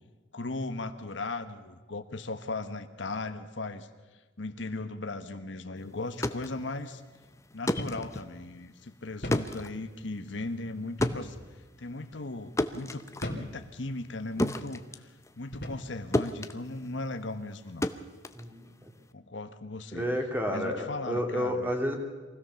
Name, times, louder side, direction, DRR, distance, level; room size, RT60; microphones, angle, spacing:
voice 1, 0.3-3.9 4.4-7.0 7.5-11.4 11.8-13.1 13.3-15.1 15.4-17.9 19.1-20.1 20.5-21.7, left 2 dB, 75° left, 9 dB, 1.2 m, -37 dB
sound 1, 6.0-15.9 16.1-19.1, left 1 dB, 15° left, 0.7 m, -34 dB
sound 2, 7.8-8.1 8.4-8.5 9.2-9.5 11.0-11.3 12.0-12.2 13.2-13.5 14.3-14.5 15.5-15.9, left 1 dB, 55° left, 2.8 m, -37 dB
voice 2, 18.3-18.7 19.9-22.0, equal, 10° right, 3 dB, 2.5 m, -30 dB
23.5 x 16.5 x 7.0 m, 1.3 s
head